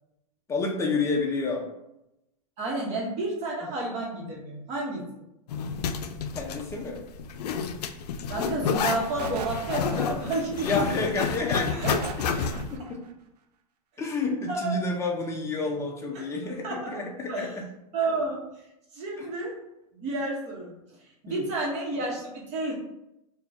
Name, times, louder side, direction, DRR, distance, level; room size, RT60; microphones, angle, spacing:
voice 1, 0.5-1.6 6.3-7.0 10.6-11.7 12.7-13.0 14.0-17.7 19.2-19.3 21.3-21.5, left 3 dB, 15° left, 1 dB, 0.6 m, -29 dB
voice 2, 2.6-5.0 8.3-11.0 11.7-11.9 14.5-14.8 16.1-16.3 16.6-16.9 17.3-17.5 17.9-18.4 18.9-19.6 19.9-20.7 21.2-22.7, right 2 dB, 35° right, -3 dB, 1.1 m, -31 dB
Zipper (clothing), 5.5-12.7, left 6 dB, 80° left, 0.4 m, -30 dB
sound 1, 9.2-10.4 11.8-12.9, right 4 dB, 85° right, 0.6 m, -37 dB
3.8 x 2.4 x 3.5 m, 0.87 s
hypercardioid pair, 135°, 20 cm